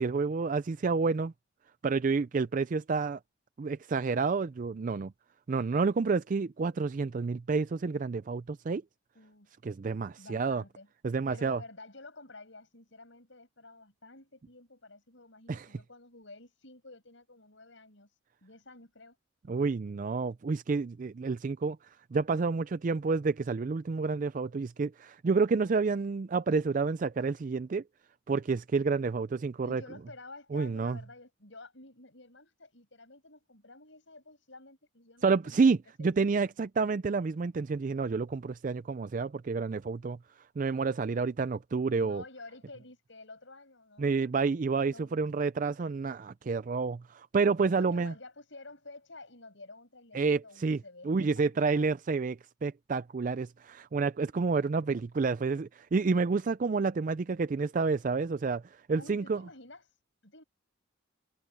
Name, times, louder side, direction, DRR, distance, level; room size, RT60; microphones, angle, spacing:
voice 1, 0.0-1.3 1.8-3.2 3.6-5.1 5.5-8.8 9.6-10.6 11.0-11.6 15.5-15.7 19.5-27.8 28.3-29.8 30.5-31.0 35.2-40.2 40.6-42.2 44.0-48.1 50.1-50.8 51.1-59.4, right 4 dB, 40° right, 0.4 m, -29 dB
voice 2, 9.1-9.5 10.1-10.9 11.3-19.2 29.6-36.1 42.0-44.2 44.9-45.1 47.7-51.9 58.9-60.4, left 2 dB, 65° left, 6.7 m, -51 dB
head